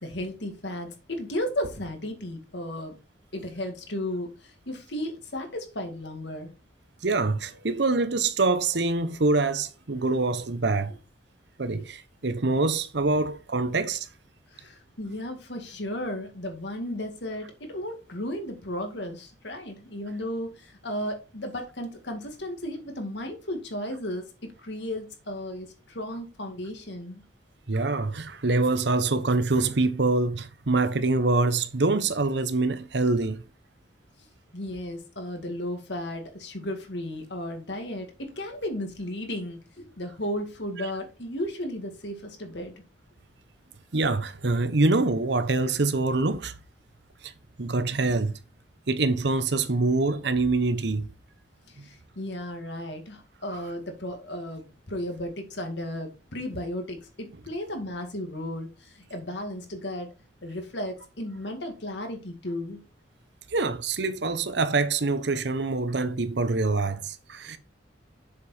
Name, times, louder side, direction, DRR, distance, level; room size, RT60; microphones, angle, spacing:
voice 1, 0.0-3.0 3.3-6.5 11.7-11.8 14.5-27.2 34.5-42.7 51.7-60.1 60.4-62.8, left 1 dB, 65° left, 2.2 m, -34 dB
voice 2, 7.0-10.9 11.6-14.1 27.7-33.4 43.9-46.5 47.2-47.3 47.6-48.3 48.9-51.1 63.5-67.6, right 3 dB, 65° right, 0.9 m, -25 dB
7.3 x 6.8 x 4.3 m
head